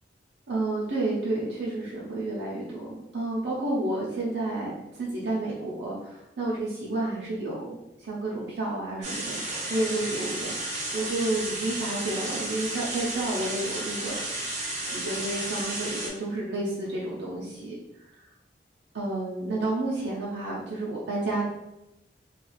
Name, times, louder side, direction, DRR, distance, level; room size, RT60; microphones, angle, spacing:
voice 1, 0.5-9.4 9.7-10.5 10.9-14.2 14.9-17.8 18.9-21.5, right 2 dB, 85° right, -6 dB, 0.5 m, -30 dB
sound 1, 9.0-16.1, right 2 dB, 45° right, 0.7 m, -33 dB
2.3 x 2.3 x 3.1 m, 0.90 s
head